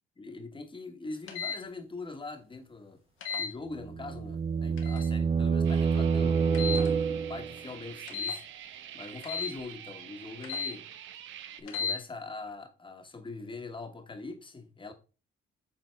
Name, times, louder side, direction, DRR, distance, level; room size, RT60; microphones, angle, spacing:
voice 1, 0.2-3.0 3.4-6.4 7.1-8.4 8.9-10.9 11.6-14.9, left 3 dB, 25° left, 1.3 m, -42 dB
sound 1, 1.3-1.6 3.2-3.5 4.8-5.1 6.5-6.9 8.1-8.4 9.2-9.5 10.4-10.7 11.7-12.0, left 6 dB, 80° left, 1.4 m, -34 dB
sound 2, 3.7-7.6, right 6 dB, 30° right, 0.6 m, -27 dB
sound 3, 5.6-11.6, right 10 dB, 75° right, 0.7 m, -47 dB
7.8 x 3.8 x 3.4 m
cardioid pair, 90°, 20 cm